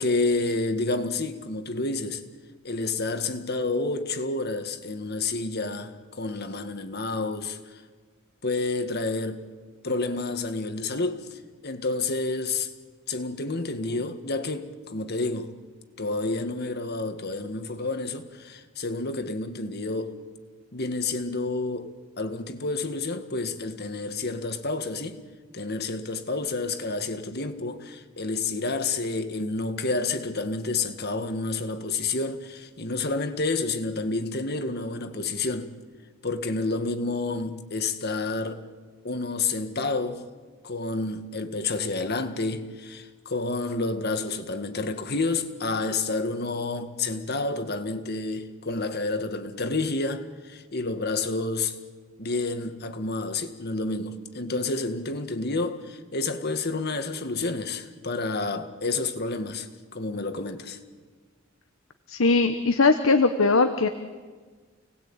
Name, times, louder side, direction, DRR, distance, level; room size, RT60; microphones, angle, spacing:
voice 1, 0.0-2.2 2.6-7.8 8.4-9.4 9.8-12.7 13.1-15.5 16.0-20.2 20.7-25.2 25.5-35.7 36.2-38.6 39.0-40.2 40.6-51.8 52.2-60.8, left 3 dB, 55° left, 1.9 m, -29 dB
voice 2, 62.1-63.9, left 3 dB, 90° left, 1.3 m, -20 dB
29.5 x 19.5 x 8.9 m
head